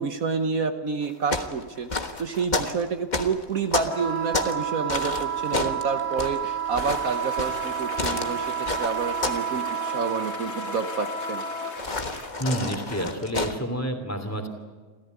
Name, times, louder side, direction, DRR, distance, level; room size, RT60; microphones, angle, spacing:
voice 1, 0.0-1.9 2.2-11.4, right 5 dB, 55° right, 8 dB, 1.4 m, -29 dB
sound 1, 1.0-4.6 4.9-9.5 9.8-10.1 11.8-13.6, left 3 dB, 25° left, 1.3 m, -30 dB
Wind instrument woodwind instrument, 3.9-11.7, right 7 dB, 75° left, 3.7 m, -30 dB
sound 2, 6.7-12.3, left 2 dB, 50° left, 3.4 m, -39 dB
voice 2, 12.4-14.5, right 1 dB, 10° left, 5 dB, 2.9 m, -29 dB
27.5 x 14.5 x 9.5 m, 1.4 s
omnidirectional pair, 1.9 m